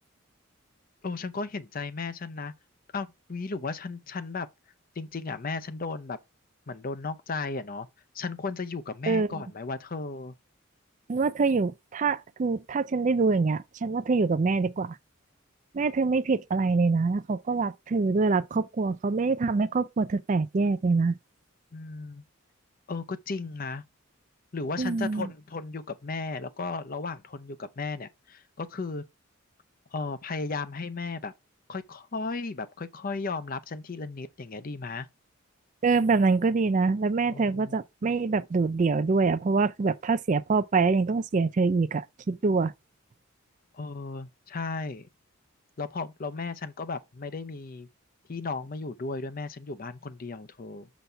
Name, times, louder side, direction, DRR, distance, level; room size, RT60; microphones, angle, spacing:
voice 1, 1.0-2.5 2.9-4.5 5.0-6.2 6.7-7.9 8.1-10.3 21.7-22.2 22.9-23.8 24.5-29.0 29.9-31.3 31.7-35.1 37.3-37.8 43.7-45.1 45.8-47.9 48.3-50.9, left 4 dB, 45° left, 0.6 m, -35 dB
voice 2, 11.1-15.0 15.7-21.2 24.8-25.3 35.8-42.7, right 4 dB, 35° right, 0.4 m, -25 dB
6.8 x 4.1 x 4.4 m
head